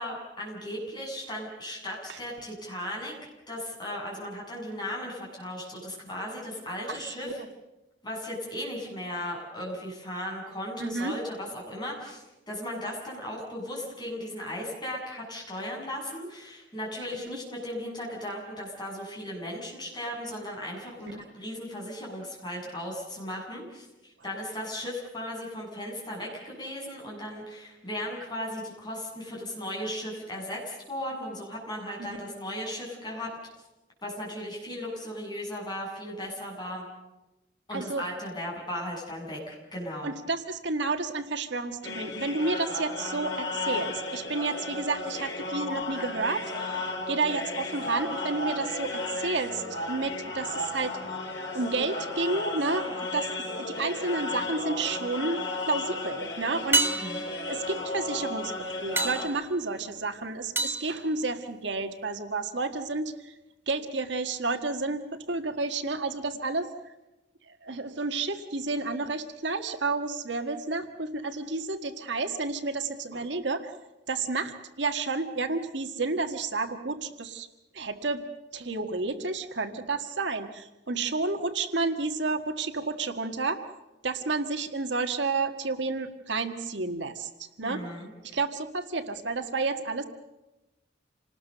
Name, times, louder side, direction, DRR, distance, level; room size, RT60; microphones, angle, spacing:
voice 1, 0.0-3.2 3.5-7.4 8.0-33.3 34.0-36.8 37.7-40.1 56.9-57.2 87.6-88.1, left 1 dB, 20° left, -2 dB, 7.9 m, -36 dB
voice 2, 6.9-7.5 10.8-11.1 21.1-21.2 37.7-38.0 40.0-51.2 51.5-53.3 53.6-57.0 57.4-63.3 63.7-66.7 67.5-73.7 74.1-77.5 77.7-78.2 78.5-83.6 84.0-87.8 88.3-90.0, right 3 dB, 70° right, 7 dB, 1.6 m, -31 dB
sound 1, 41.8-59.3, left 2 dB, 80° left, 5.5 m, -34 dB
sound 2, 54.4-55.0 56.7-61.9 66.3-66.4, right 3 dB, 10° right, 1.1 m, -32 dB
28.0 x 19.5 x 6.7 m, 1.0 s
head